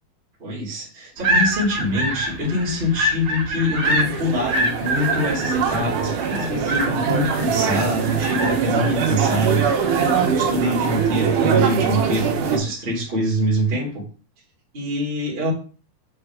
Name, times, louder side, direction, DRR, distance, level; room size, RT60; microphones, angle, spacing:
voice 1, 0.4-14.0 14.7-15.5, equal, 20° right, -3 dB, 2.1 m, -24 dB
sound 1, 1.2-12.7, right 1 dB, 45° right, 2.1 m, -27 dB
sound 2, 3.8-12.6, right 7 dB, 65° right, 2.3 m, -23 dB
8.0 x 4.6 x 3.5 m, 0.38 s
omnidirectional pair, 4.3 m